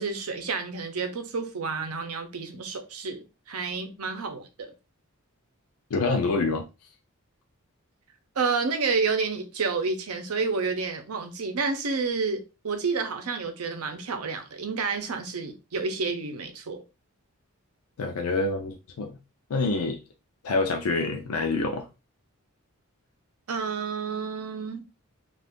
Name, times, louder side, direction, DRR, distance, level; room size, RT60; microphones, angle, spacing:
voice 1, 0.0-4.7 8.4-16.8 23.5-24.8, right 4 dB, 80° right, 0.7 m, -30 dB
voice 2, 5.9-6.7 18.0-19.2 19.5-20.0 20.4-21.9, left 3 dB, 85° left, 0.5 m, -26 dB
2.5 x 2.4 x 3.5 m
head